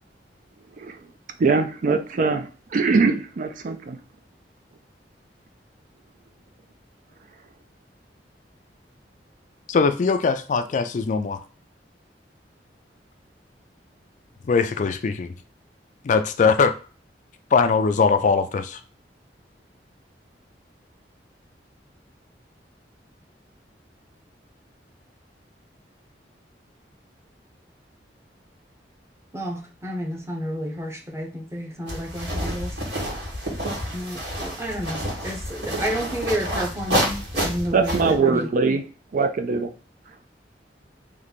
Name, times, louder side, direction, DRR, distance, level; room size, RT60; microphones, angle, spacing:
voice 1, 0.8-1.1 1.4-4.0 37.7-38.8 39.1-39.7 40.1-40.2, right 4 dB, 50° right, 0.4 m, -22 dB
voice 2, 9.7-11.4 14.5-15.3 16.0-16.7 17.5-18.8, left 5 dB, 45° left, 0.3 m, -21 dB
voice 3, 29.3-32.7 33.9-38.5, equal, 15° right, 0.8 m, -30 dB
sound 1, 31.9-38.2, equal, 75° right, 1.8 m, -29 dB
3.2 x 3.1 x 4.0 m
head